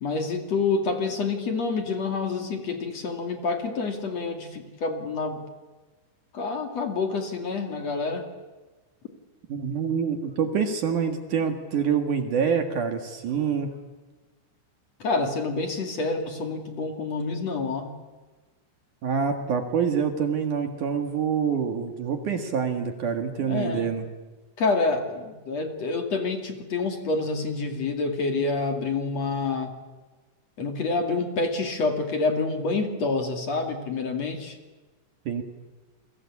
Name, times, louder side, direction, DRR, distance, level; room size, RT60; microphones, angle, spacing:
voice 1, 0.0-5.4 6.3-8.3 15.0-17.9 21.0-21.1 23.5-23.9 24.6-29.7 30.6-34.6, left 3 dB, 45° left, 5 dB, 2.7 m, -27 dB
voice 2, 9.5-13.7 19.0-24.1 35.3-35.4, right 6 dB, 55° right, 6 dB, 2.4 m, -26 dB
29.0 x 23.5 x 8.6 m, 1.2 s
omnidirectional pair, 5.8 m